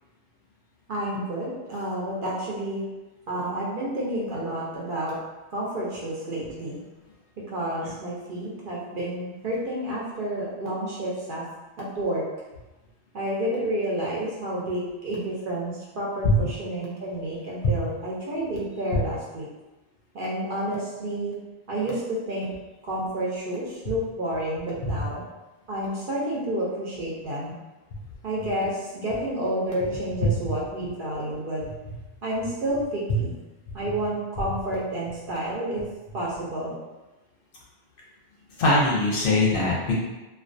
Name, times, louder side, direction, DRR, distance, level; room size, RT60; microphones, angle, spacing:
voice 1, 0.9-2.8 3.3-5.2 5.5-6.8 7.5-11.4 11.8-12.2 13.1-19.5 20.1-21.4 21.7-22.5 22.8-25.2 25.7-27.6 28.2-31.6 32.2-33.3 33.7-35.8 36.1-36.7, right 1 dB, 60° right, -5 dB, 0.7 m, -30 dB
voice 2, 38.6-40.0, left 1 dB, 60° left, -4 dB, 0.7 m, -22 dB
2.3 x 2.2 x 2.5 m, 1.1 s
omnidirectional pair, 1.1 m